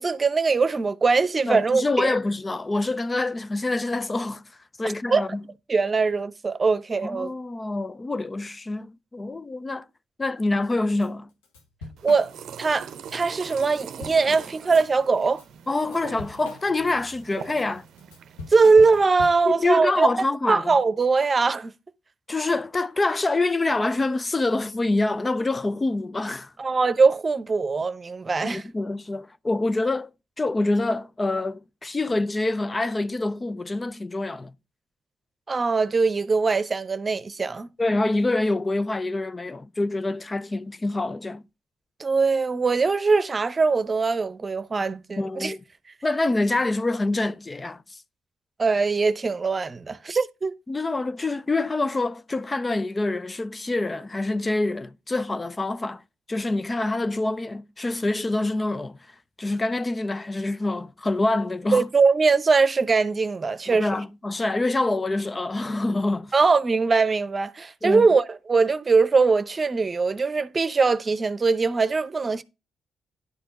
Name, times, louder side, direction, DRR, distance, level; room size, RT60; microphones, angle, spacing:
voice 1, 0.0-2.1 5.1-5.2 5.7-7.3 12.0-12.3 12.6-15.4 18.5-20.1 20.5-21.7 26.6-28.6 35.5-37.7 42.0-45.5 48.6-50.5 61.7-63.9 66.3-72.4, right 4 dB, 40° right, 0.8 m, -21 dB
voice 2, 1.5-4.4 4.8-5.4 7.0-9.9 10.2-11.3 15.7-17.8 19.4-20.7 22.3-26.5 28.4-30.1 30.4-34.5 37.8-41.4 45.2-45.6 46.0-48.0 50.7-56.0 56.3-59.0 59.4-61.9 63.7-66.3 67.8-68.1, left 2 dB, 30° left, 0.5 m, -26 dB
Drum kit / Drum, 11.0-11.1 11.4-12.7 13.1-13.3 13.6-14.9 15.3-19.6, left 3 dB, 85° left, 1.2 m, -42 dB
sound 1, 12.0-19.1, right 8 dB, 65° right, 0.6 m, -42 dB
11.0 x 4.4 x 5.4 m
hypercardioid pair, 40°, 0 cm